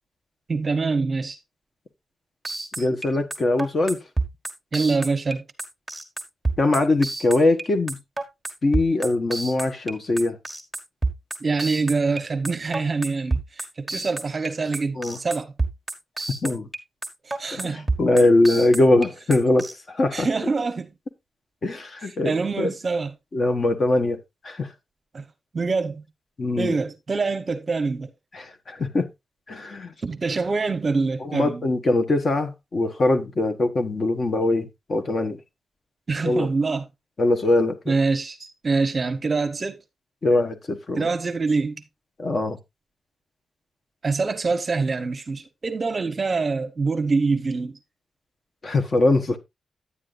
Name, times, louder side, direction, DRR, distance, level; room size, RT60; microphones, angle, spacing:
voice 1, 0.5-1.4 2.8-2.9 4.7-5.4 11.4-15.5 17.2-17.9 20.1-20.9 22.0-23.1 25.1-25.2 25.5-26.0 26.6-28.1 30.0-31.7 36.1-36.8 37.9-39.8 41.0-41.8 44.0-47.7, right 4 dB, 30° right, 0.9 m, -25 dB
sound 1, 2.5-19.7, right 3 dB, 5° right, 1.5 m, -28 dB
voice 2, 2.8-4.0 6.6-8.0 8.6-10.4 15.0-15.2 16.4-16.7 17.5-20.3 21.6-22.7 23.3-24.2 24.4-24.7 26.4-26.7 28.3-29.1 29.5-29.9 31.2-35.4 36.2-36.5 37.2-37.9 40.2-41.1 42.2-42.6 48.6-49.4, left 2 dB, 35° left, 1.2 m, -22 dB
9.8 x 9.6 x 2.5 m
wide cardioid pair, 175°, 0 cm